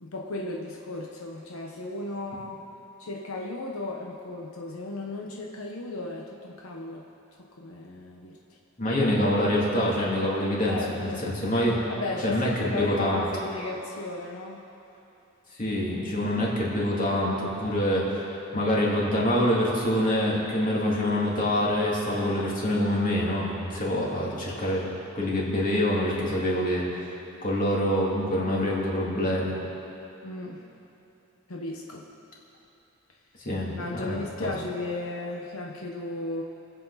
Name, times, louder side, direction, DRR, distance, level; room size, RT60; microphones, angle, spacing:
voice 1, 0.0-2.6 3.0-7.0 7.6-8.4 10.7-11.2 11.9-14.6 30.2-30.6 31.5-32.0 33.8-36.4, left 2 dB, 85° left, -1 dB, 1.0 m, -35 dB
voice 2, 8.8-11.8 12.2-13.2 15.6-24.9 25.1-27.1 27.4-29.6 33.4-34.5, left 1 dB, 40° left, -5 dB, 2.8 m, -26 dB
25.0 x 8.5 x 4.1 m, 2.9 s
head